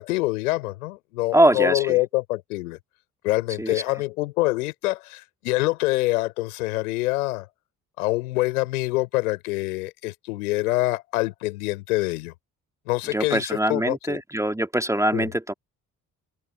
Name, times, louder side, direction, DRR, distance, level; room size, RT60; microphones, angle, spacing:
voice 1, 0.0-2.8 3.2-7.5 8.0-12.3 12.9-14.2 15.1-15.3, left 20 dB, 70° left, 4.4 m, -25 dB
voice 2, 1.3-2.0 3.6-3.8 13.1-15.5, right 1 dB, 5° right, 3.0 m, -22 dB
figure-of-eight pair, 45°, 44 cm